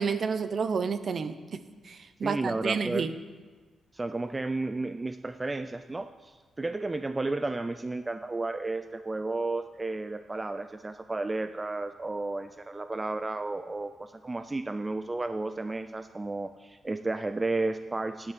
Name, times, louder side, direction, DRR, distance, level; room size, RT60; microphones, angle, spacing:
voice 1, 0.0-3.1, right 5 dB, 50° right, 12 dB, 0.7 m, -30 dB
voice 2, 2.2-3.1 3.9-18.3, right 2 dB, 20° right, 10 dB, 0.3 m, -32 dB
10.0 x 10.0 x 5.3 m, 1.4 s
cardioid pair, 130°, 0 cm